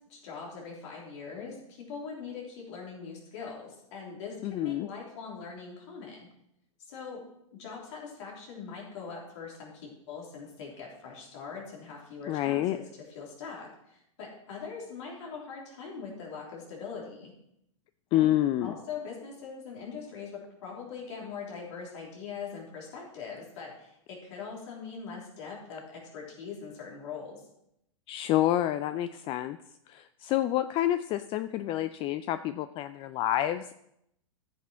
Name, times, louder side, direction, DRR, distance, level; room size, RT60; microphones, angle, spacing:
voice 1, 0.0-6.3 6.8-7.2 7.6-17.3 18.1-27.4, left 5 dB, 55° left, -2 dB, 3.6 m, -42 dB
voice 2, 4.4-4.9 12.3-12.8 18.1-18.7 28.1-29.6 29.9-33.7, left 13 dB, 30° left, 12 dB, 0.4 m, -28 dB
13.5 x 6.2 x 4.5 m, 0.78 s
hypercardioid pair, 105°, 17 cm